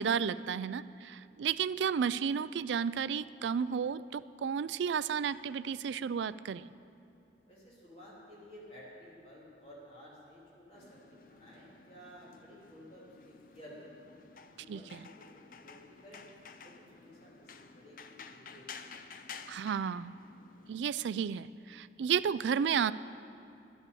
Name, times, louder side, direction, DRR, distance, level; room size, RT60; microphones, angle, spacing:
voice 1, 0.0-6.7 14.7-14.8 19.5-20.1 20.7-22.9, right 7 dB, 90° right, 16 dB, 0.3 m, -32 dB
voice 2, 7.5-14.1 14.6-16.3 16.6-18.9, equal, 35° left, -6 dB, 3.2 m, -54 dB
sound 1, 10.7-20.8, left 5 dB, 50° left, 0.6 m, -52 dB
11.0 x 11.0 x 6.9 m, 2.6 s
head